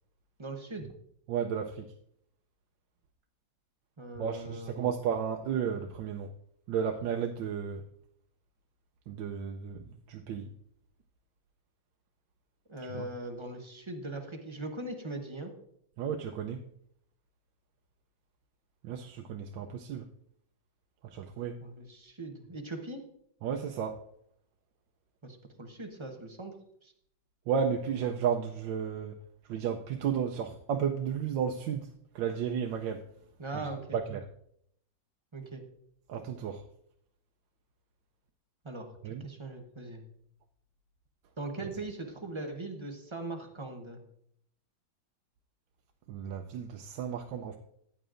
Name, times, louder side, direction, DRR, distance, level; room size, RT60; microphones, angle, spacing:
voice 1, 0.4-0.9 4.0-4.9 12.7-15.5 21.6-23.0 25.2-26.5 26.8-26.9 33.4-34.0 35.3-35.6 38.6-40.0 41.4-44.0, right 2 dB, 30° right, 4 dB, 0.5 m, -40 dB
voice 2, 1.3-1.9 4.2-6.3 6.7-7.8 9.1-10.5 12.9-13.1 16.0-16.6 18.8-20.1 21.1-21.6 23.4-24.0 27.5-29.1 29.5-31.9 32.1-33.0 33.9-34.2 36.1-36.6 39.0-39.3 46.1-47.6, right 7 dB, 85° right, 4 dB, 1.3 m, -33 dB
14.0 x 9.0 x 2.5 m, 0.70 s
omnidirectional pair, 2.0 m